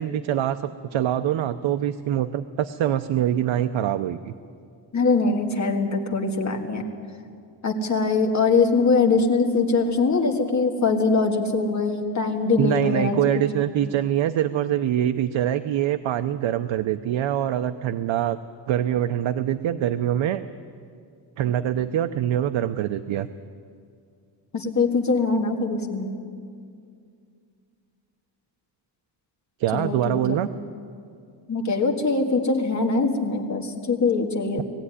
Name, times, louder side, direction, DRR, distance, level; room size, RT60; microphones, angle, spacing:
voice 1, 0.0-4.3 12.6-18.4 18.7-20.4 21.4-23.3 29.6-30.5, right 11 dB, 90° right, 9 dB, 0.7 m, -24 dB
voice 2, 4.9-6.8 7.6-13.2 24.5-26.1 29.7-30.2 31.5-34.6, left 4 dB, 40° left, 2 dB, 1.8 m, -22 dB
20.0 x 15.0 x 9.8 m, 2.3 s
wide cardioid pair, 165°, 45 cm